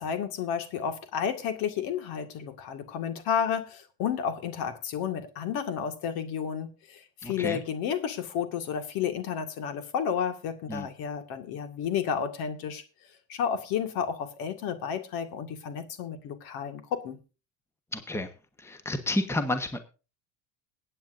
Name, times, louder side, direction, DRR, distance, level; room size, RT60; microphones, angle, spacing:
voice 1, 0.0-12.8 13.3-17.2, left 8 dB, 60° left, 8 dB, 2.1 m, -31 dB
voice 2, 7.2-7.6 10.7-10.9 17.9-18.3 18.6-19.8, left 1 dB, 5° left, 8 dB, 1.3 m, -30 dB
21.5 x 8.9 x 2.6 m, 0.32 s
supercardioid pair, 115°, 40 cm